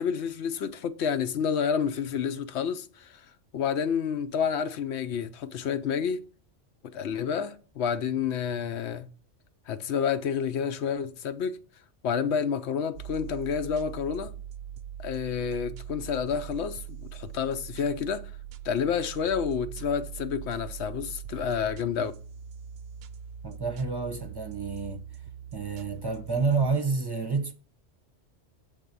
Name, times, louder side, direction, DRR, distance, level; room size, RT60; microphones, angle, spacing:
voice 1, 0.0-3.3 3.5-6.2 6.8-9.1 9.7-11.6 12.0-14.3 15.0-18.3 18.6-22.1, left 7 dB, 65° left, 1.0 m, -29 dB
sound 1, 12.9-26.8, right 10 dB, 65° right, 0.7 m, -42 dB
voice 2, 23.4-25.0 25.5-27.5, right 4 dB, 20° right, 0.8 m, -29 dB
8.5 x 3.7 x 6.7 m
omnidirectional pair, 1.2 m